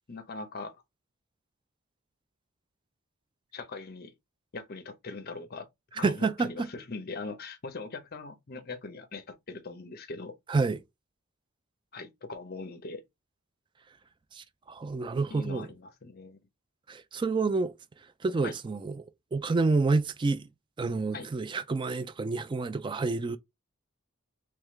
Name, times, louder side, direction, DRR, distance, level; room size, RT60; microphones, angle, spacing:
voice 1, 0.1-0.8 3.5-4.1 4.5-5.7 5.9-10.4 11.9-13.0 15.3-16.4 18.4-18.5 21.1-21.3, left 3 dB, 45° left, 0.7 m, -41 dB
voice 2, 6.0-6.7 10.5-10.8 14.3-15.7 16.9-17.7 18.2-19.0 19.3-20.5 20.8-23.4, right 3 dB, 20° right, 0.3 m, -28 dB
3.6 x 3.2 x 3.1 m
head